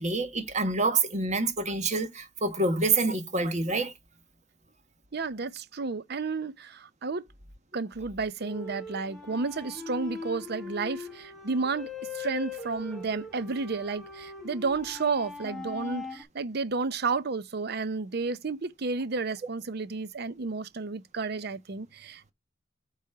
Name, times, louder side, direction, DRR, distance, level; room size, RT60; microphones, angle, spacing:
voice 1, 0.0-3.9, right 3 dB, 35° right, 1.4 m, -27 dB
voice 2, 5.1-7.2 7.7-11.9 12.1-22.3, right 4 dB, 50° right, 0.6 m, -32 dB
sound 1, 8.4-16.2, left 4 dB, ahead, 1.8 m, -41 dB
8.5 x 3.2 x 5.6 m
head